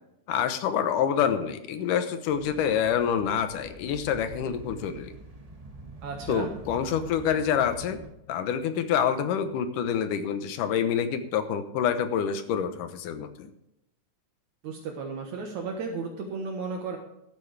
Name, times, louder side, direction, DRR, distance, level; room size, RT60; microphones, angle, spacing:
voice 1, 0.3-5.1 6.3-8.0 8.3-13.5, left 8 dB, 90° left, 10 dB, 2.6 m, -27 dB
sound 1, 2.3-8.1, right 2 dB, 20° right, 1.1 m, -46 dB
voice 2, 6.0-6.5 14.6-17.0, right 4 dB, 70° right, 2 dB, 2.4 m, -34 dB
14.0 x 11.5 x 3.4 m, 0.84 s
omnidirectional pair, 3.6 m